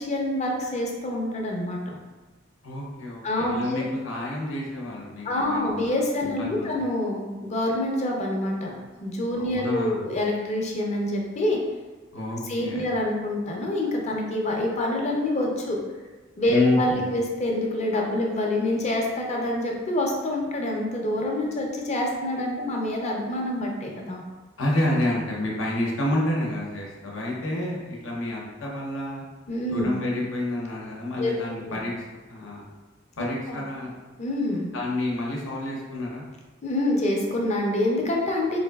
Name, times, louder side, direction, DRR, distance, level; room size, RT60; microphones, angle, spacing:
voice 1, 0.0-2.0 3.2-3.8 5.2-11.6 12.5-15.8 16.4-24.2 29.5-29.9 31.2-31.3 31.7-31.8 33.2-33.6 34.2-34.7 36.6-38.6, left 1 dB, 35° left, -1 dB, 0.5 m, -26 dB
voice 2, 2.6-5.7 6.2-6.7 9.4-10.0 12.1-12.9 16.5-17.1 24.6-29.2 29.7-32.6 33.2-33.9 34.7-36.2, left 1 dB, 85° left, -3 dB, 0.8 m, -29 dB
4.0 x 2.6 x 2.3 m, 1.2 s
head